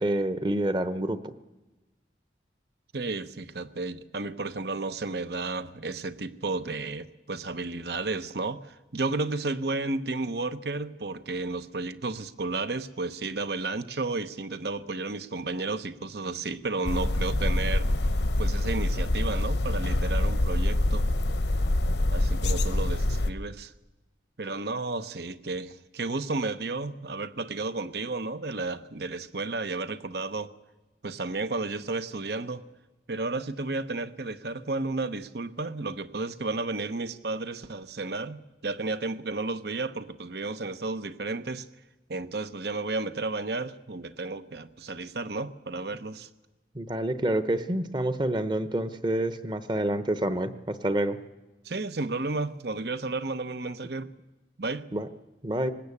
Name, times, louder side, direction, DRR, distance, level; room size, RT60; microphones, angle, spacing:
voice 1, 0.0-1.3 46.7-51.2 54.9-55.1 55.4-55.7, right 1 dB, 25° right, 11 dB, 0.9 m, -28 dB
voice 2, 2.9-17.9 18.4-21.1 22.1-23.7 24.4-30.5 31.0-32.6 33.1-41.7 42.1-46.3 51.6-54.1 54.6-54.9, right 3 dB, 70° right, 12 dB, 0.9 m, -32 dB
sound 1, 16.8-23.3, left 1 dB, 85° left, 0.9 m, -25 dB
19.5 x 19.0 x 8.5 m, 1.1 s
head